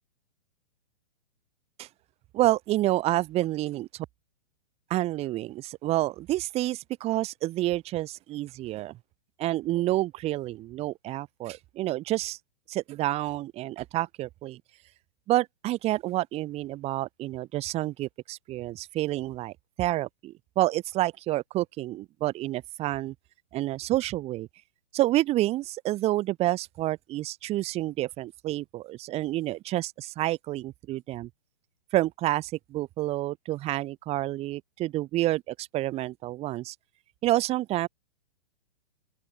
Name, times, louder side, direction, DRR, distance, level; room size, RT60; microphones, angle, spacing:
voice 1, 2.3-4.1 4.9-9.0 9.4-12.4 12.7-14.6 15.3-23.1 23.5-24.5 24.9-31.3 31.9-36.7 37.2-37.9, right 16 dB, 20° right, 2.3 m, -29 dB
open air
hypercardioid pair, 160°, 33 cm